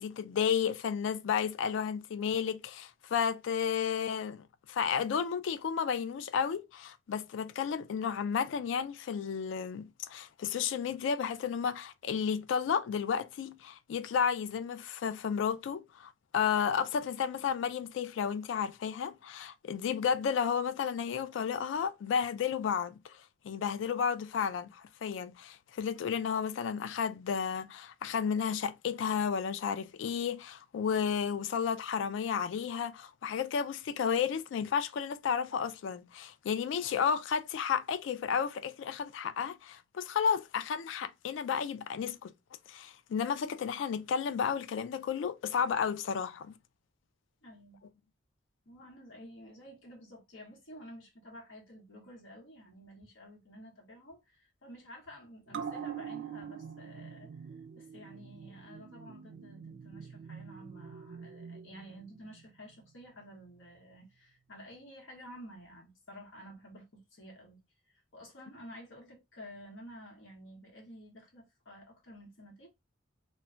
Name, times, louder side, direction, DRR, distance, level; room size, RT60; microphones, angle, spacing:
voice 1, 0.0-23.2 23.4-42.3 42.7-46.5, left 7 dB, 70° left, 0.3 m, -32 dB
voice 2, 47.4-47.8 48.7-67.6 67.9-72.7, equal, 90° left, 1.0 m, -51 dB
sound 1, 55.5-62.4 62.8-62.9, right 7 dB, 65° right, 0.3 m, -44 dB
2.2 x 2.2 x 3.6 m
head